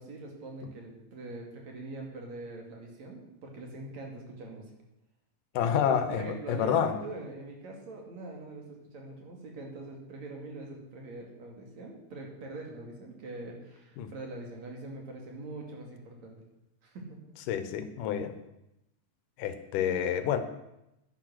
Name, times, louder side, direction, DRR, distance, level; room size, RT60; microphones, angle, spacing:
voice 1, 0.0-4.7 5.6-16.4 16.8-17.2, right 2 dB, 60° right, 1 dB, 3.6 m, -43 dB
voice 2, 5.5-6.2 6.5-6.9 14.0-14.1 17.5-18.4 19.4-20.4, left 8 dB, 90° left, 10 dB, 2.6 m, -28 dB
11.0 x 10.5 x 6.4 m, 0.88 s
omnidirectional pair, 3.6 m